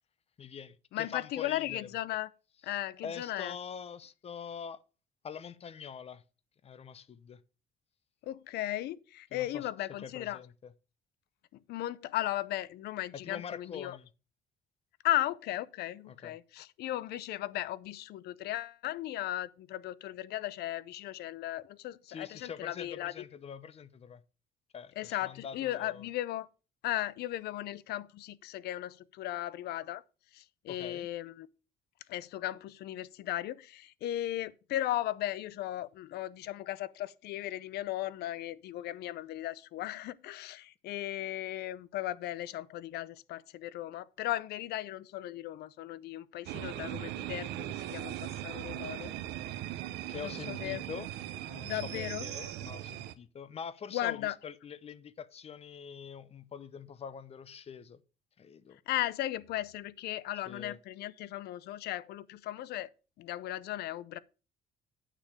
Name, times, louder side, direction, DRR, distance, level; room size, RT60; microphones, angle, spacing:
voice 1, 0.4-1.9 2.7-4.8 5.2-6.2 6.6-7.4 9.3-9.7 10.0-10.7 13.1-14.1 16.1-16.4 22.1-24.2 24.7-26.0 30.7-31.1 50.1-51.1 51.5-58.0 58.4-58.8 60.5-60.8, left 7 dB, 35° left, 0.8 m, -44 dB
voice 2, 0.9-2.3 2.6-3.5 8.2-10.4 11.5-14.0 15.0-23.1 25.0-26.5 26.8-30.0 30.3-31.5 32.1-49.1 50.2-50.9 51.6-52.3 53.9-54.4 58.9-62.9 63.2-64.2, left 14 dB, 75° left, 0.6 m, -36 dB
sound 1, 46.5-53.1, right 13 dB, 85° right, 0.7 m, -39 dB
9.1 x 6.7 x 4.8 m
cardioid pair, 110°, 17 cm